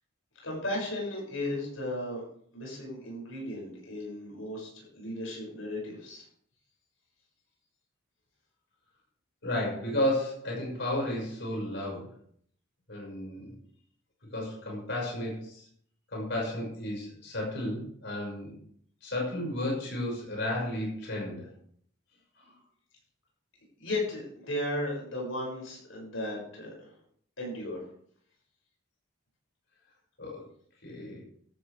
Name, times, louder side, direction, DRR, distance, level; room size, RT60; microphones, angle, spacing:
voice 1, 0.4-2.2 2.5-6.2 23.8-26.9 27.4-27.8, left 1 dB, 85° left, -2 dB, 6.8 m, -35 dB
voice 2, 9.4-12.1 12.9-13.6 14.3-15.6 16.1-18.5 19.0-21.5 22.4-22.5 30.2-30.4 30.8-31.2, left 1 dB, 60° left, -3 dB, 6.0 m, -33 dB
14.5 x 12.5 x 3.5 m, 0.62 s
head